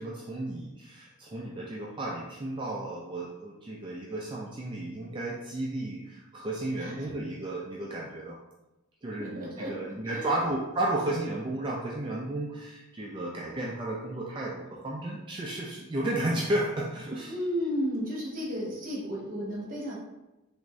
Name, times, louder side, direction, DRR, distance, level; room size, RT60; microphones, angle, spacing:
voice 1, 0.0-8.4 9.0-17.4, right 1 dB, 25° right, -3 dB, 0.3 m, -33 dB
voice 2, 6.8-7.1 9.2-9.7 10.0-10.3 17.3-20.0, equal, 40° right, -4 dB, 1.0 m, -33 dB
3.4 x 2.5 x 3.1 m, 1.0 s
head